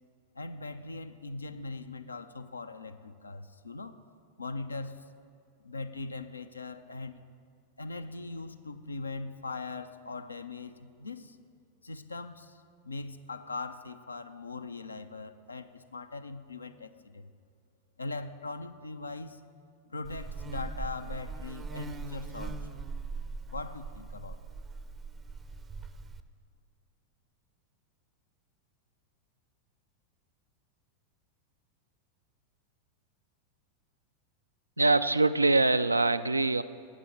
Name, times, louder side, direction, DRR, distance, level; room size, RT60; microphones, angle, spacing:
voice 1, 0.4-4.0 4.4-5.0 5.6-7.3 7.8-11.4 11.8-17.3 18.0-19.4 19.9-22.8 23.5-24.4, left 3 dB, 80° left, 10 dB, 0.5 m, -40 dB
Buzz, 20.0-26.2, right 4 dB, 20° right, 0.5 m, -40 dB
voice 2, 34.8-36.6, right 3 dB, 80° right, 12 dB, 0.4 m, -24 dB
10.0 x 8.3 x 7.4 m, 2.3 s
figure-of-eight pair, 90°, 0 cm